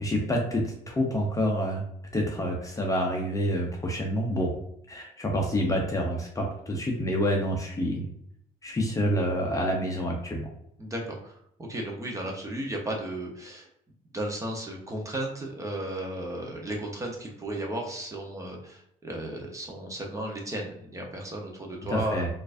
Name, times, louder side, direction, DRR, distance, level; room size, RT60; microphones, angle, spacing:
voice 1, 0.0-1.8 2.1-4.5 4.9-8.0 8.6-10.5 21.9-22.3, equal, 20° left, 0 dB, 0.6 m, -27 dB
voice 2, 10.8-13.7 14.1-22.3, right 1 dB, 20° right, 0 dB, 0.8 m, -34 dB
4.4 x 2.5 x 2.5 m, 0.74 s
cardioid pair, 110°, 17 cm